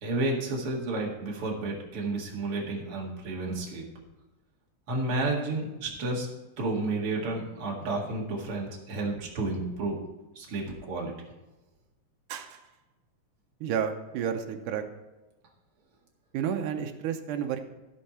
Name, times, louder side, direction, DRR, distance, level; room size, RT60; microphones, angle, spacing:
voice 1, 0.0-3.8 4.9-6.3 6.6-10.0 10.4-11.1, right 2 dB, 50° right, -2 dB, 2.7 m, -31 dB
voice 2, 12.3-12.6 13.6-14.8 16.3-17.6, right 8 dB, 85° right, 5 dB, 2.3 m, -31 dB
15.5 x 5.6 x 4.3 m, 1.1 s
omnidirectional pair, 3.5 m